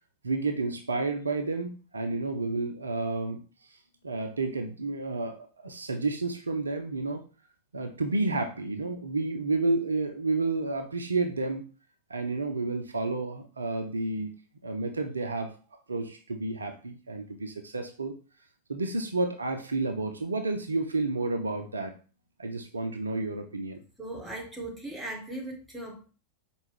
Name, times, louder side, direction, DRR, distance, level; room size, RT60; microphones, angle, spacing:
voice 1, 0.2-3.4 4.0-7.2 7.7-11.6 12.1-14.3 14.6-15.5 15.9-18.1 18.7-21.9 22.4-23.8, right 3 dB, 75° right, 5 dB, 0.4 m, -30 dB
voice 2, 24.0-26.1, right 1 dB, 5° right, 0 dB, 1.2 m, -38 dB
4.5 x 2.3 x 3.3 m, 0.36 s
figure-of-eight pair, 90°, 0 cm